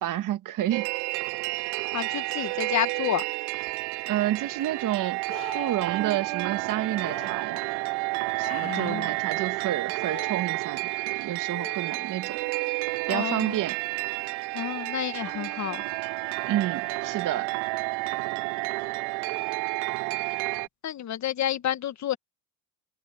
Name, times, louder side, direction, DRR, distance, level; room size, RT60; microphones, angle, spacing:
voice 1, 0.0-0.9 4.1-7.6 8.4-10.8 11.1-12.4 13.1-13.8 16.5-17.5, right 13 dB, 45° right, 1.7 m, -29 dB
sound 1, 0.7-20.7, right 27 dB, 65° right, 0.8 m, -30 dB
voice 2, 1.9-3.2 8.6-9.1 13.1-13.6 14.5-15.8 20.8-22.2, left 11 dB, 40° left, 1.7 m, -30 dB
sound 2, 3.7-3.8 5.3-6.0 7.0-7.3 8.4-9.1 10.1-10.3 11.5-12.2 15.4-15.5, left 15 dB, 55° left, 2.7 m, -43 dB
supercardioid pair, 95°, 43 cm